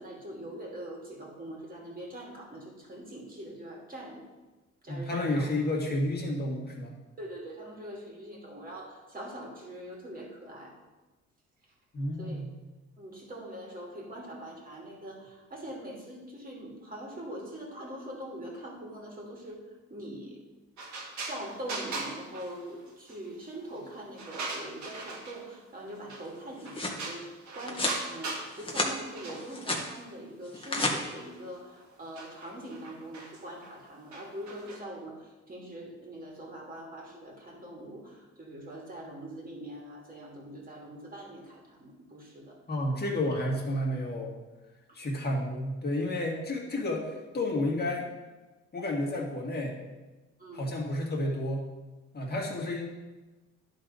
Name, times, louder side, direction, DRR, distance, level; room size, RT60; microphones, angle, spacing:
voice 1, 0.0-4.2 4.8-5.4 7.2-10.7 12.2-12.4 13.0-19.6 19.9-20.4 21.2-35.2 35.5-42.6 44.9-45.0 50.4-50.7, right 1 dB, 30° right, -1 dB, 2.6 m, -43 dB
voice 2, 4.9-7.0 11.9-12.6 42.7-44.4 44.9-48.1 48.7-49.8 50.5-51.6 52.1-52.9, left 1 dB, 35° left, -2 dB, 2.1 m, -31 dB
sound 1, 20.8-23.2 23.5-25.6 26.1-26.4 26.6-28.5 28.8-30.1 30.7-34.8, right 3 dB, 70° right, 1.9 m, -40 dB
sound 2, 26.3-27.0 27.7-28.0 28.5-28.9 29.3-29.9 30.4-30.9, left 2 dB, 15° left, 1.7 m, -31 dB
11.0 x 4.1 x 5.0 m, 1.2 s
cardioid pair, 90°, 30 cm